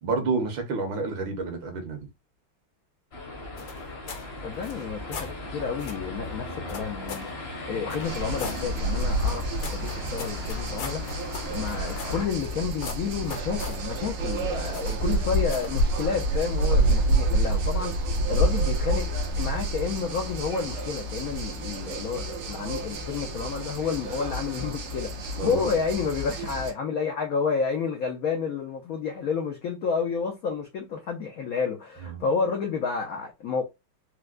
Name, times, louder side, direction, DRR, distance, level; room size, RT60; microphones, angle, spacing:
voice 1, 0.0-2.0 25.4-25.7 32.1-32.2, right 3 dB, 70° right, 1.7 m, -29 dB
sound 1, 3.1-12.3, left 2 dB, 45° left, 0.8 m, -38 dB
sound 2, 3.6-4.3 4.6-5.3 5.8-6.0 6.7-7.3 7.9-8.6 9.2-12.5 12.8-13.8 14.7-15.1 15.5-15.8, left 6 dB, 65° left, 1.1 m, -39 dB
voice 2, 4.4-7.3 7.7-9.4 9.7-19.1 19.4-33.6, left 5 dB, 80° left, 0.8 m, -30 dB
sound 3, 8.0-26.7, right 1 dB, 85° right, 1.7 m, -28 dB
4.5 x 2.1 x 2.3 m
omnidirectional pair, 2.3 m